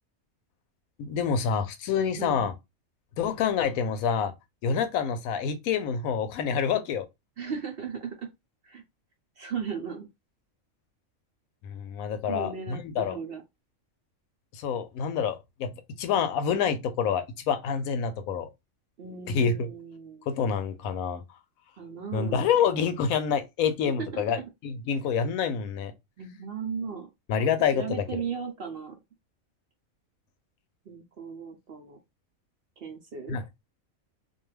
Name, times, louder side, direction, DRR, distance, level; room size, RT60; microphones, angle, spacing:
voice 1, 1.0-2.5 3.2-4.3 4.6-7.1 11.6-13.2 14.5-15.7 16.0-18.5 19.3-19.7 20.3-21.2 22.1-25.9 27.3-28.2 33.3-33.4, left 7 dB, 85° left, 1.0 m, -27 dB
voice 2, 2.2-2.5 7.4-8.3 8.6-8.8 9.4-10.1 12.3-13.4 19.0-20.3 21.8-22.5 23.8-24.3 26.2-27.1 27.7-28.9 30.9-32.0 32.8-33.4, right 6 dB, 60° right, 0.7 m, -36 dB
2.5 x 2.3 x 3.1 m
omnidirectional pair, 1.4 m